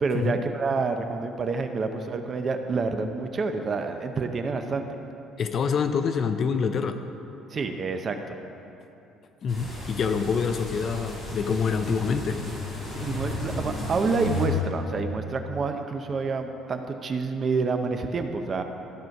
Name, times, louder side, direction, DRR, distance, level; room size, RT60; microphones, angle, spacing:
voice 1, 0.0-4.9 7.5-8.3 12.9-18.6, right 4 dB, 25° right, 6 dB, 0.6 m, -28 dB
voice 2, 5.4-7.0 9.4-12.4, left 6 dB, 35° left, 8 dB, 0.4 m, -26 dB
sound 1, 9.5-14.5, left 1 dB, 15° left, 2.5 m, -34 dB
14.0 x 6.2 x 5.2 m, 2.9 s
cardioid pair, 180°, 0 cm